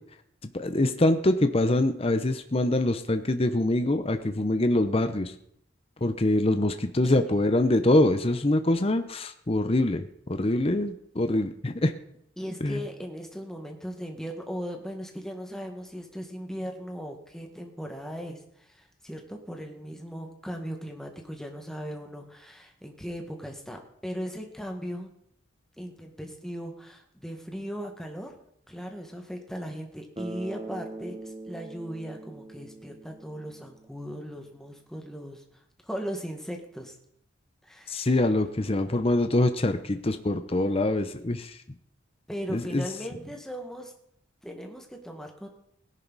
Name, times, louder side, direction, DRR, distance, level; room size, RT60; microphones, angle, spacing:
voice 1, 0.5-5.3 6.0-10.0 10.3-11.9 12.6-12.8 37.9-41.6 42.5-42.8, left 1 dB, 30° left, 8 dB, 0.8 m, -24 dB
voice 2, 12.4-25.1 25.8-28.3 28.7-36.9 37.6-38.2 42.3-43.9 44.4-45.5, equal, 5° left, 2 dB, 1.7 m, -38 dB
Bass guitar, 30.2-34.2, right 2 dB, 25° right, 1.0 m, -42 dB
18.0 x 11.0 x 4.1 m, 0.71 s
head